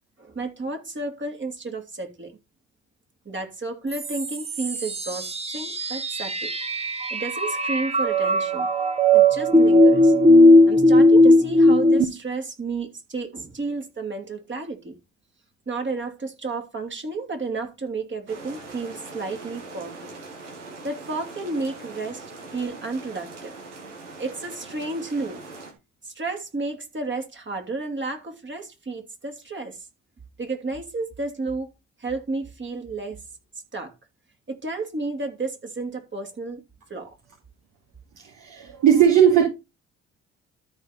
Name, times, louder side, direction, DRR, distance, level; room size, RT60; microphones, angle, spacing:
voice 1, 0.2-2.4 3.2-6.5 7.1-8.7 9.1-10.1 10.7-14.9 15.7-20.1 20.8-22.3 22.5-23.5 24.2-25.4 26.0-29.9 30.4-31.7 32.0-33.2 33.7-33.9 34.5-36.6 36.9-37.1, right 3 dB, 30° right, 2.9 m, -32 dB
sound 1, 3.9-12.0, left 1 dB, 15° right, 1.4 m, -17 dB
sound 2, 18.3-25.7, right 3 dB, 90° right, 1.5 m, -41 dB
voice 2, 38.2-39.4, right 8 dB, 65° right, 2.7 m, -18 dB
13.0 x 4.7 x 4.2 m
hypercardioid pair, 45°, 35 cm